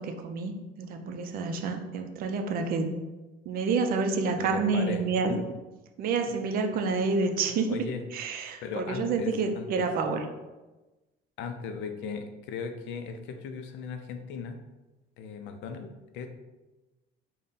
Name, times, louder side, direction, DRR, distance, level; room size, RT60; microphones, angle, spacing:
voice 1, 0.0-2.9 3.5-5.4 6.0-7.9 8.1-10.2, right 4 dB, 50° right, 5 dB, 0.4 m, -28 dB
voice 2, 4.4-5.0 5.3-5.4 6.3-6.4 7.7-8.0 8.6-9.9 11.4-14.6 15.2-16.3, left 5 dB, 75° left, 7 dB, 0.5 m, -37 dB
4.0 x 2.2 x 3.6 m, 1.1 s
cardioid pair, 165°, 20 cm